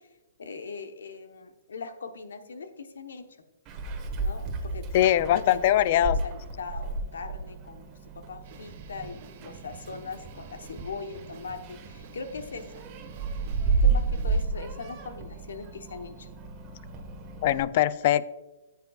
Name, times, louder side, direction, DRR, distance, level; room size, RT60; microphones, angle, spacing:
voice 1, 0.4-3.2 4.2-4.9 5.2-7.9 8.1-12.8 13.6-16.3, left 4 dB, 90° left, 7 dB, 1.0 m, -40 dB
Meow, 3.7-17.6, right 3 dB, 25° right, 1.4 m, -32 dB
voice 2, 4.9-6.2 17.4-18.3, left 12 dB, 45° left, 18 dB, 0.3 m, -22 dB
sound 1, 8.4-14.4, right 6 dB, 45° right, 1.4 m, -49 dB
13.5 x 8.0 x 2.4 m, 1.1 s
hypercardioid pair, 150°, 0 cm